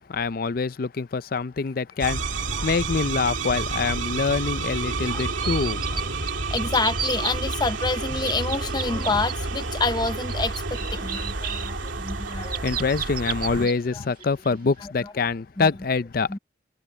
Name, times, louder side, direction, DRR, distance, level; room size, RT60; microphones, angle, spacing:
voice 1, 0.1-5.8 12.3-16.4, left 4 dB, 45° left, 0.5 m, -25 dB
sound 1, 2.0-13.7, right 3 dB, 75° right, 2.3 m, -30 dB
sound 2, 5.0-6.0 6.3-7.6 7.8-9.3 9.8-13.7 14.2-14.5, right 8 dB, 45° right, 2.2 m, -33 dB
voice 2, 5.1-5.5 5.9-6.2 6.5-12.7 15.6-15.7 16.3-16.4, left 3 dB, 20° left, 0.8 m, -28 dB
head